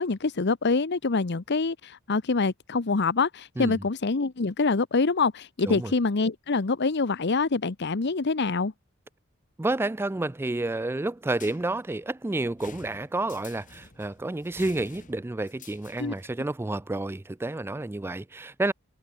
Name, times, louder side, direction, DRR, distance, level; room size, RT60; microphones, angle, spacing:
voice 1, 0.0-8.7 16.0-16.1, left 4 dB, 55° left, 0.8 m, -25 dB
voice 2, 9.6-18.7, right 2 dB, 10° right, 0.4 m, -30 dB
sound 1, 11.4-16.3, left 4 dB, 40° left, 4.9 m, -49 dB
head